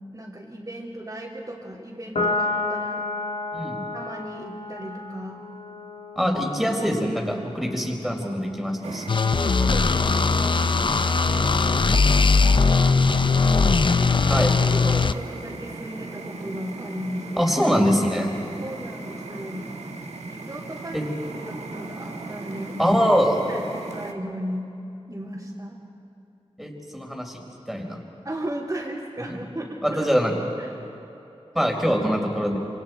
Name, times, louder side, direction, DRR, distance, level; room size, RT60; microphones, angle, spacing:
voice 1, 0.1-3.0 3.9-5.4 9.6-10.8 14.1-14.3 14.7-17.5 18.6-19.7 20.2-21.0 21.3-22.8 23.2-24.7 25.1-25.8 28.2-30.1 30.6-30.7 31.5-31.7, right 1 dB, 30° right, -7 dB, 3.1 m, -35 dB
Piano, 2.1-8.8, left 2 dB, 85° left, 2.1 m, -32 dB
voice 2, 3.5-3.8 6.2-9.1 14.3-14.6 17.4-18.3 20.9-21.0 22.8-23.4 26.6-27.4 27.7-28.0 29.3-29.4 29.8-30.3 31.5-32.6, equal, ahead, 0 dB, 4.2 m, -23 dB
sound 1, 8.8-24.1, right 3 dB, 85° right, 1.5 m, -37 dB
sound 2, 9.1-15.1, left 4 dB, 50° left, 0.5 m, -19 dB
27.5 x 26.0 x 4.7 m, 2.9 s
wide cardioid pair, 75°, 11 cm